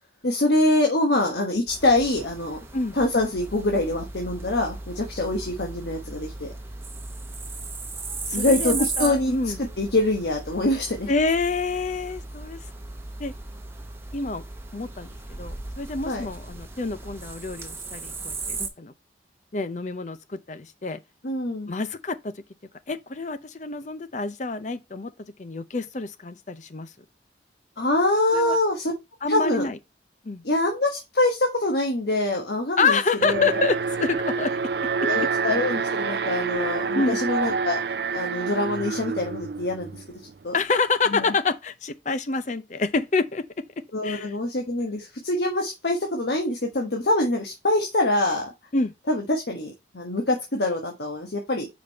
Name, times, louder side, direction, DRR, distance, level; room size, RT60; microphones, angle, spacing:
voice 1, 0.2-2.6 2.9-6.5 8.3-9.3 9.8-11.1 16.0-16.3 21.2-21.7 27.8-28.9 29.3-29.7 30.4-33.6 35.0-37.8 38.1-40.0 40.4-40.5 41.1-41.3 43.9-48.5 49.1-51.7, left 2 dB, 70° left, 1.3 m, -24 dB
sound 1, 1.7-18.7, right 3 dB, 15° right, 0.9 m, -36 dB
voice 2, 8.3-9.6 11.1-12.6 13.2-13.3 14.1-14.4 14.7-18.9 19.5-21.0 21.7-22.3 22.9-25.1 25.4-26.9 28.3-28.6 29.2-29.8 30.2-30.4 32.8-34.5 36.9-37.2 40.5-44.3 48.7-48.9, left 4 dB, 40° left, 0.6 m, -27 dB
Alarm, 33.2-40.3, right 5 dB, 60° right, 0.5 m, -27 dB
5.2 x 5.1 x 4.0 m
head